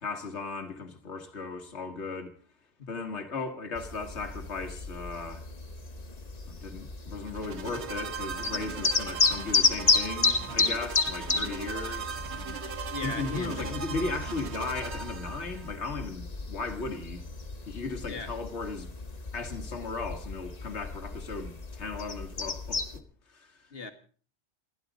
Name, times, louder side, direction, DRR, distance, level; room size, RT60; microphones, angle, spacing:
voice 1, 0.0-2.3 2.9-5.5 6.5-12.6 13.0-17.2 17.7-18.9 19.3-23.0 23.3-23.6, left 3 dB, 85° left, 1.9 m, -36 dB
sound 1, 3.8-23.0, left 4 dB, 40° left, 1.2 m, -32 dB
sound 2, 7.2-15.7, right 6 dB, 80° right, 1.4 m, -39 dB
voice 2, 12.9-13.7 18.1-18.3 23.7-23.9, left 4 dB, 60° left, 1.9 m, -38 dB
29.5 x 11.0 x 4.0 m
omnidirectional pair, 1.1 m